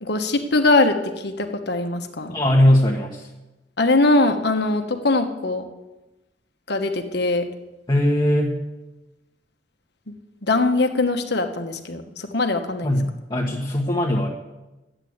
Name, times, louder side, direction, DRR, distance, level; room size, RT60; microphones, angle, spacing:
voice 1, 0.0-2.4 3.8-5.6 6.7-7.5 10.1-10.2 10.4-12.9, left 2 dB, 65° left, 5 dB, 1.2 m, -21 dB
voice 2, 2.3-3.3 7.9-8.6 12.8-14.3, left 1 dB, 25° left, -2 dB, 1.3 m, -20 dB
12.5 x 9.0 x 8.0 m, 1.0 s
head